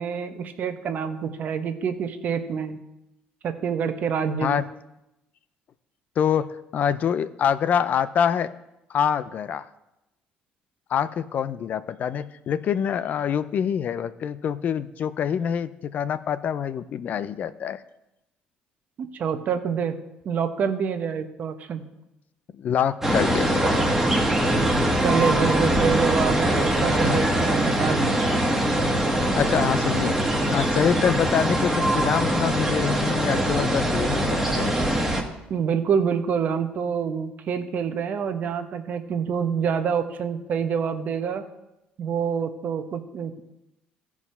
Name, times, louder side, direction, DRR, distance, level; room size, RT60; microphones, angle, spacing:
voice 1, 0.0-2.8 3.4-4.6 19.0-20.0 20.2-21.8 25.0-28.3 35.5-41.4 42.0-43.4, right 7 dB, 50° right, 8 dB, 0.9 m, -27 dB
voice 2, 6.7-8.5 8.9-9.7 10.9-17.8 22.6-23.6 29.4-30.1 30.5-34.8, left 8 dB, 50° left, 14 dB, 0.5 m, -25 dB
sound 1, 23.0-35.2, right 1 dB, 10° right, 1.5 m, -22 dB
13.5 x 4.8 x 5.6 m, 0.90 s
cardioid pair, 100°, 3 cm